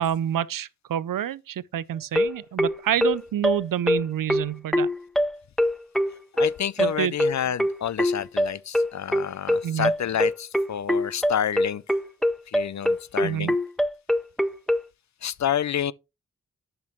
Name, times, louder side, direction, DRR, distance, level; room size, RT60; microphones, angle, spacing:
voice 1, 0.0-4.9 6.8-7.1 9.6-9.9 13.2-13.5, right 10 dB, 80° right, 0.5 m, -27 dB
sound 1, 2.2-14.9, left 1 dB, ahead, 0.4 m, -23 dB
voice 2, 6.3-11.8 12.5-13.6 15.2-15.9, left 9 dB, 60° left, 0.5 m, -29 dB
10.5 x 6.0 x 3.0 m
wide cardioid pair, 140°, 32 cm